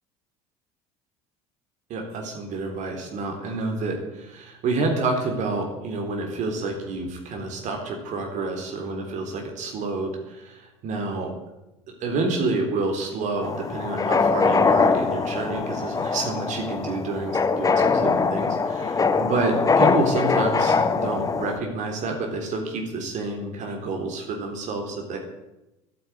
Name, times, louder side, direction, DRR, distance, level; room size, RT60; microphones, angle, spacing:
voice 1, 1.9-11.3 12.0-25.2, right 3 dB, 55° right, 2 dB, 3.8 m, -29 dB
sound 1, 13.4-21.6, left 4 dB, 25° left, 1.3 m, -22 dB
12.0 x 9.2 x 9.5 m, 0.98 s
supercardioid pair, 85°, 15 cm